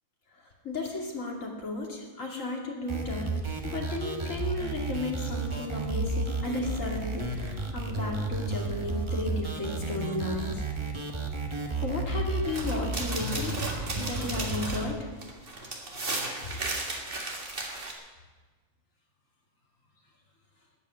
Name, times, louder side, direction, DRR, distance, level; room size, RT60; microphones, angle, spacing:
voice 1, 0.6-3.3 3.6-10.7 11.8-13.6 14.0-15.1, left 2 dB, 65° left, 0 dB, 2.9 m, -34 dB
sound 1, 2.9-14.9, right 2 dB, 20° right, 1.3 m, -32 dB
sound 2, 12.5-17.9, right 2 dB, 40° right, 2.0 m, -35 dB
13.0 x 9.1 x 8.9 m, 1.3 s
omnidirectional pair, 1.5 m